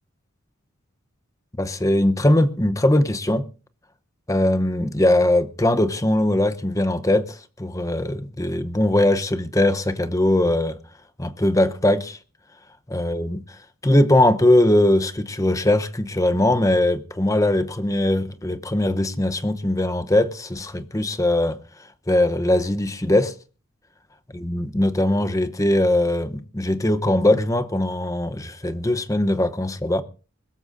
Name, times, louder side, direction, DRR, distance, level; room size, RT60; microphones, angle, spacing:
voice 1, 1.6-3.5 4.3-10.8 11.2-12.2 12.9-13.6 13.8-21.6 22.1-23.3 24.3-30.0, left 1 dB, 15° left, 0.8 m, -20 dB
22.0 x 13.5 x 2.6 m
head